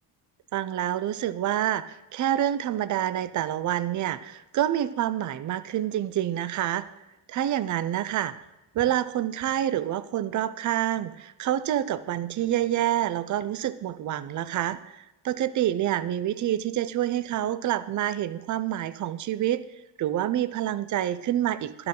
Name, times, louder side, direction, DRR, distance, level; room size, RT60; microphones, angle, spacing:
voice 1, 0.5-6.8 7.3-8.3 8.7-19.6 20.0-21.9, right 12 dB, 40° right, 14 dB, 0.6 m, -27 dB
11.5 x 5.7 x 3.8 m, 0.96 s
hypercardioid pair, 60°, 48 cm